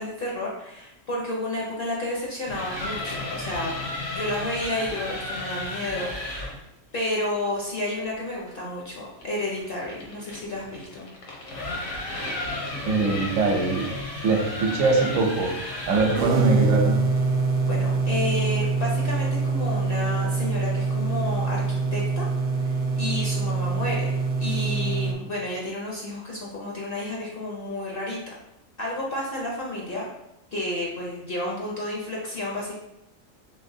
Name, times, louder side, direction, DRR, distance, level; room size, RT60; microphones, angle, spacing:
voice 1, 0.0-3.8 4.1-6.5 6.9-11.1 17.6-22.3 22.6-24.1 24.4-28.3 28.8-30.1 30.5-32.8, left 1 dB, 55° left, -3 dB, 0.7 m, -31 dB
sound 1, 2.3-6.6 9.2-16.4, left 2 dB, 70° left, 1.2 m, -33 dB
voice 2, 12.8-13.8 14.2-15.5 15.9-17.0, right 3 dB, 70° right, 0 dB, 1.0 m, -22 dB
sound 2, 16.1-25.1, right 4 dB, 85° right, 0.4 m, -24 dB
3.8 x 3.3 x 2.6 m, 0.88 s
omnidirectional pair, 1.5 m